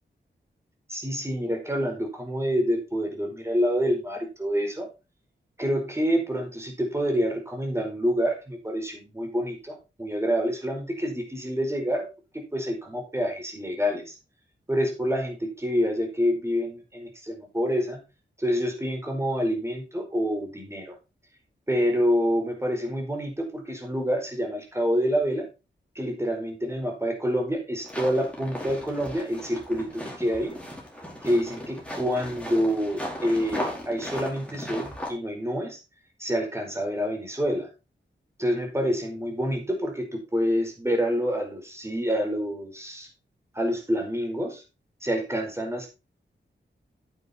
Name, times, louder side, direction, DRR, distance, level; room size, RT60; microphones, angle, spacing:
voice 1, 0.9-4.9 5.6-12.1 12.3-14.1 14.7-18.0 18.4-21.0 21.7-25.5 25.9-30.5 31.2-35.8 36.2-37.7 38.4-43.1 43.5-44.6 45.0-45.9, equal, 15° right, 3 dB, 4.8 m, -27 dB
sound 1, 27.8-35.1, equal, 5° left, 5.3 m, -36 dB
9.5 x 9.3 x 4.4 m, 0.28 s
wide cardioid pair, 100°, 20 cm